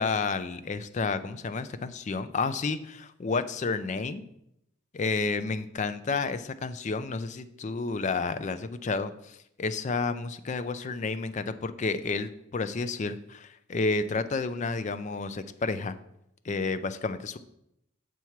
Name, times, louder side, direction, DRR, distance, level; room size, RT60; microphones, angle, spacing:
voice 1, 0.0-4.2 4.9-16.0 16.4-17.4, left 4 dB, 35° left, 12 dB, 0.4 m, -31 dB
6.8 x 4.6 x 5.8 m, 0.79 s
head